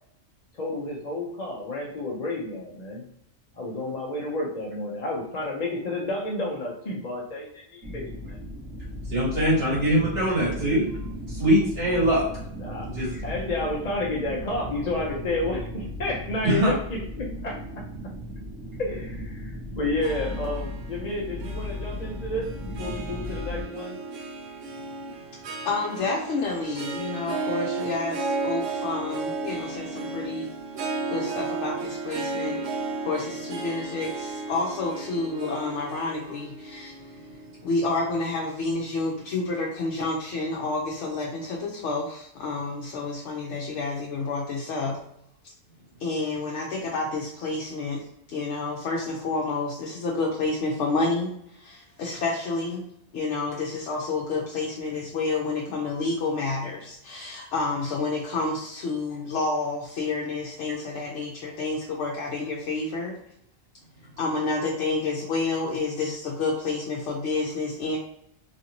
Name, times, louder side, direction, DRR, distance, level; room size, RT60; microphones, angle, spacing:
voice 1, 0.5-3.0 3.5-8.4 12.5-12.9 13.2-17.6 18.8-24.0, left 2 dB, 45° left, -3 dB, 0.6 m, -31 dB
sound 1, 7.8-23.6, left 1 dB, 20° right, 1.0 m, -36 dB
voice 2, 9.1-10.9 11.3-12.3 12.9-13.1 16.4-16.7, equal, 50° right, -8 dB, 1.7 m, -22 dB
Harp, 20.0-38.4, right 3 dB, 75° right, 0.9 m, -34 dB
voice 3, 25.6-30.5 31.1-37.0 37.6-45.0 46.0-52.8 53.1-63.2 64.2-68.0, left 3 dB, 70° left, -2 dB, 0.9 m, -29 dB
3.2 x 2.6 x 2.8 m, 0.74 s
omnidirectional pair, 1.3 m